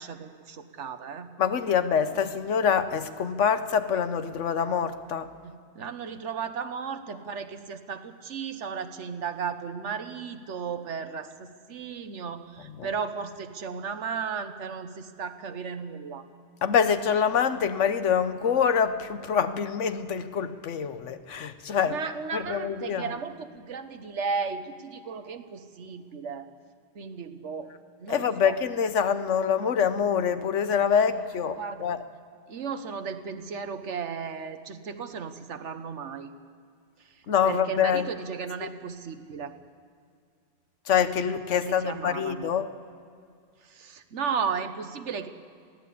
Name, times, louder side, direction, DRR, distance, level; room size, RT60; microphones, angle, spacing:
voice 1, 0.0-1.3 5.4-16.2 21.9-26.5 26.9-27.7 28.0-28.5 31.6-31.9 32.5-36.3 37.4-39.5 41.5-42.5 43.7-45.3, right 6 dB, 75° right, 9 dB, 1.3 m, -35 dB
voice 2, 1.4-5.3 12.7-12.9 16.6-22.0 22.3-23.2 28.1-32.0 37.3-38.1 38.6-38.7 40.9-42.7, left 7 dB, 85° left, 11 dB, 1.2 m, -25 dB
21.5 x 15.5 x 8.5 m, 2.2 s
omnidirectional pair, 1.2 m